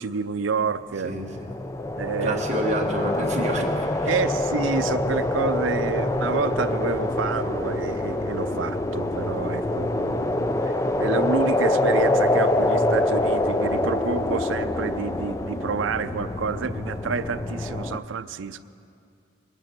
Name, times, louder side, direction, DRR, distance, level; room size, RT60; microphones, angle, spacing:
voice 1, 0.0-1.1 2.0-2.4 4.1-18.6, right 5 dB, 80° right, 11 dB, 0.5 m, -29 dB
sound 1, 1.0-18.0, left 1 dB, 15° left, 0.4 m, -25 dB
voice 2, 1.0-1.5 2.2-4.2, right 1 dB, 35° right, 0 dB, 1.4 m, -28 dB
21.0 x 9.0 x 5.9 m, 2.4 s
head